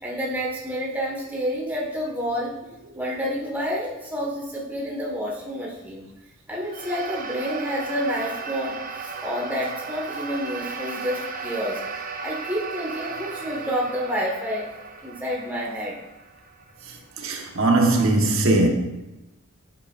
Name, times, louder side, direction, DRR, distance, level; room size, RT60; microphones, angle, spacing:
voice 1, 0.0-2.5 2.9-6.0 6.5-11.8 12.2-14.7 15.0-15.9, equal, 10° right, 1.5 m, -29 dB
sound 1, 6.6-17.2, right 4 dB, 40° right, 0.6 m, -36 dB
voice 2, 17.2-18.7, right 2 dB, 85° right, 1.2 m, -19 dB
9.1 x 7.8 x 2.5 m
head